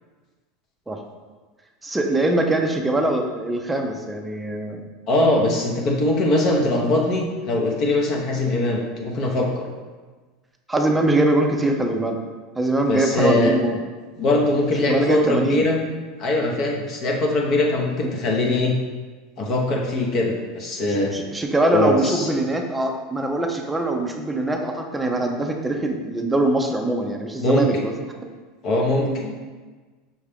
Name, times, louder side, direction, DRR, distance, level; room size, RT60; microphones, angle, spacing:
voice 1, 1.8-4.8 10.7-12.2 12.6-13.8 14.9-15.7 18.0-18.2 21.1-27.9 29.1-29.3, right 2 dB, 10° right, 2 dB, 0.5 m, -22 dB
voice 2, 5.1-9.7 12.9-13.5 14.2-15.8 16.2-18.7 19.4-21.1 21.7-22.3 27.4-27.7 28.6-29.1, left 2 dB, 45° left, 0 dB, 0.8 m, -21 dB
5.5 x 2.4 x 3.4 m, 1.4 s
supercardioid pair, 130°, 0 cm